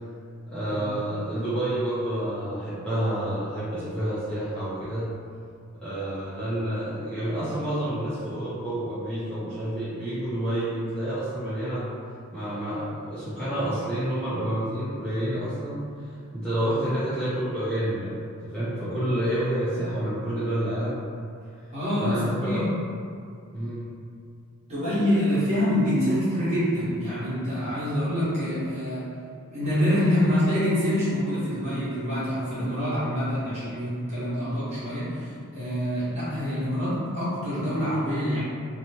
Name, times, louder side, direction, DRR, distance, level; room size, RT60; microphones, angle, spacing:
voice 1, 0.5-5.1 5.8-11.9 12.3-15.8 16.3-18.1 18.4-20.9 22.0-22.6 23.5-23.8, right 1 dB, 5° left, -15 dB, 0.6 m, -29 dB
voice 2, 21.7-22.7 24.7-29.0 29.5-38.4, equal, 30° right, -13 dB, 1.3 m, -26 dB
3.0 x 2.1 x 2.8 m, 2.3 s
head